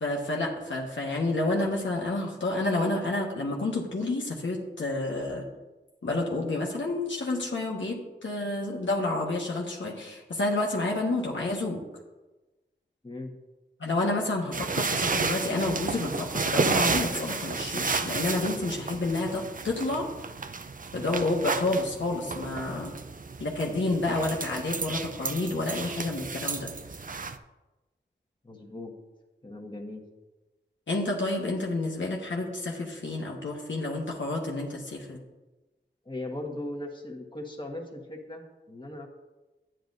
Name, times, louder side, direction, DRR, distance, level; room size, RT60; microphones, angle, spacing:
voice 1, 0.0-5.4 6.0-11.8 13.8-20.1 20.9-23.0 23.4-26.7 30.9-35.2, left 2 dB, 85° left, -2 dB, 1.3 m, -29 dB
voice 2, 14.5-15.1 23.6-23.8 28.4-28.9 29.4-30.0 36.0-39.1, left 1 dB, 25° left, 1 dB, 1.4 m, -39 dB
sound 1, 14.5-27.4, right 4 dB, 45° right, 0.5 m, -32 dB
10.0 x 9.0 x 2.6 m, 1.1 s
cardioid pair, 45°, 19 cm